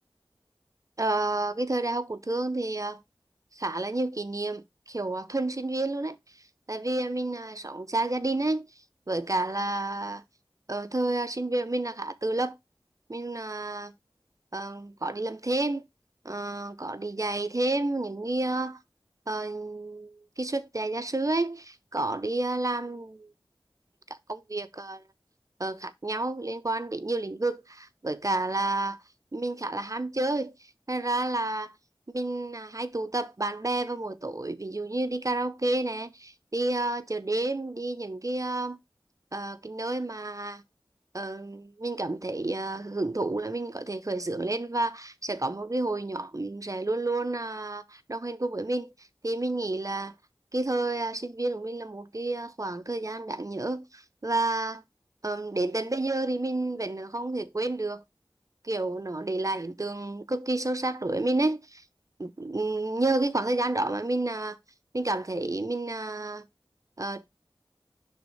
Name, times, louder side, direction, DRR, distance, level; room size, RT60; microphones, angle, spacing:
voice 1, 1.0-3.0 3.5-6.2 6.7-8.7 9.1-10.2 10.7-12.6 13.1-13.9 14.5-15.8 16.2-18.8 19.3-23.3 24.3-25.0 25.6-29.0 29.3-30.5 30.9-31.7 32.1-38.8 39.3-40.6 41.1-50.1 50.5-54.8 55.2-58.0 58.6-61.8 62.2-64.6 64.9-66.4 67.0-67.3, right 2 dB, 40° right, 0.6 m, -30 dB
10.5 x 3.5 x 3.1 m
wide cardioid pair, 45°, 9 cm